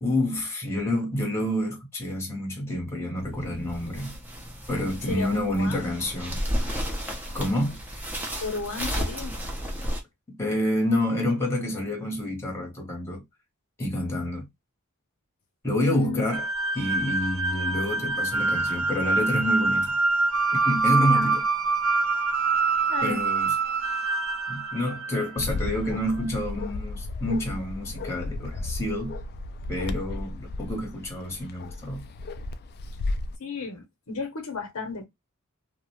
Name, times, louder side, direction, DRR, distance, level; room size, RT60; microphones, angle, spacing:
voice 1, 0.0-4.1 4.7-6.4 7.3-7.8 10.4-13.2 13.8-14.5 15.6-16.4 16.7-20.0 20.6-21.4 23.0-23.5 24.5-29.2 29.7-32.0, left 1 dB, 10° left, 1.0 m, -28 dB
sound 1, 3.2-10.0, equal, 10° right, 0.6 m, -33 dB
voice 2, 5.1-5.8 8.4-9.3 15.8-16.2 21.0-21.4 22.9-23.2 33.4-35.0, left 5 dB, 70° left, 0.8 m, -33 dB
sound 2, 16.3-25.5, right 3 dB, 65° right, 0.4 m, -25 dB
Bark, 25.4-33.4, left 2 dB, 45° left, 0.3 m, -34 dB
2.4 x 2.1 x 3.0 m
head